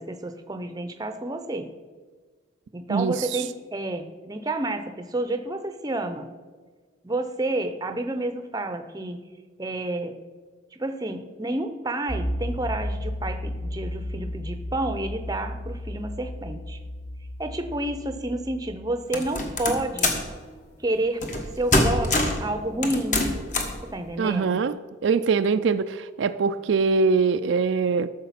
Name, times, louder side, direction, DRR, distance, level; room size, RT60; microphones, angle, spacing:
voice 1, 0.0-1.7 2.7-6.3 7.0-9.3 9.6-10.2 10.8-16.8 17.4-20.2 20.8-23.2 23.8-24.6, right 2 dB, 20° right, 8 dB, 0.6 m, -30 dB
voice 2, 2.9-3.4 24.2-24.7 25.0-28.1, right 5 dB, 70° right, 11 dB, 0.4 m, -23 dB
sound 1, 12.1-18.7, equal, 25° left, 1.5 m, -33 dB
sound 2, 19.1-20.3 21.2-21.4 21.7-22.4 22.8-23.8, left 2 dB, 40° left, 1.4 m, -23 dB
13.5 x 6.5 x 5.8 m, 1.5 s
head